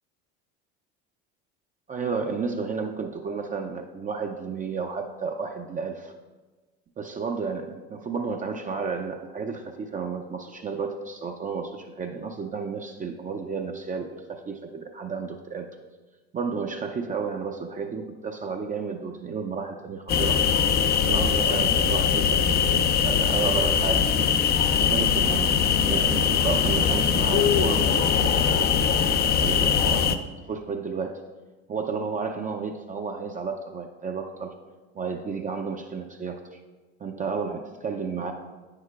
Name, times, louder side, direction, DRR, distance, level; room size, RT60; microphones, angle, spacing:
voice 1, 1.9-6.1 7.0-15.7 16.3-20.4 20.9-24.3 24.8-28.7 29.2-31.2 31.7-34.5 34.9-36.6 37.0-38.3, right 5 dB, 25° right, 3 dB, 0.5 m, -32 dB
sound 1, 20.1-30.2, left 7 dB, 30° left, 0.4 m, -22 dB
9.1 x 6.5 x 2.4 m, 1.3 s
hypercardioid pair, 85°, 32 cm